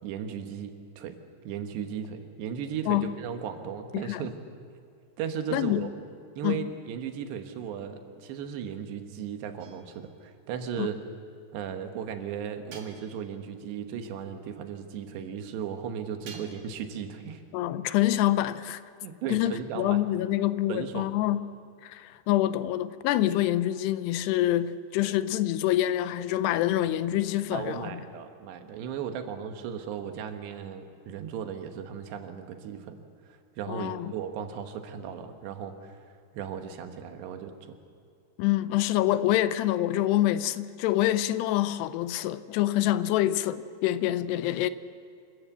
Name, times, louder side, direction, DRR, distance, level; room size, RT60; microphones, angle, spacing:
voice 1, 0.0-1.2 1.4-4.3 5.2-5.9 6.4-11.0 11.5-17.4 19.0-20.0 20.7-21.1 27.5-36.0 36.3-37.8, right 8 dB, 85° right, 3.5 m, -36 dB
voice 2, 5.5-5.9 6.4-6.7 10.8-10.9 17.5-18.8 19.3-21.4 21.8-28.0 33.7-34.1 38.4-44.7, left 14 dB, 85° left, 2.7 m, -26 dB
sound 1, 9.6-10.3 12.7-13.5 16.3-16.9, right 5 dB, 55° right, 3.2 m, -49 dB
27.5 x 13.5 x 8.2 m
omnidirectional pair, 4.8 m